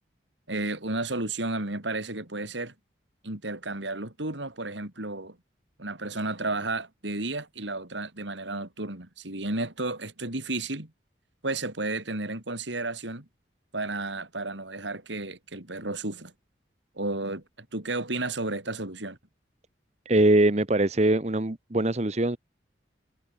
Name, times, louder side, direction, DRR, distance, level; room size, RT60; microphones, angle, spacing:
voice 1, 0.5-2.7 3.2-5.4 5.8-10.9 11.4-13.3 13.7-16.3 17.0-17.4 17.7-19.2, right 2 dB, 80° right, 3.9 m, -32 dB
voice 2, 20.1-22.4, right 1 dB, 35° right, 1.1 m, -22 dB
head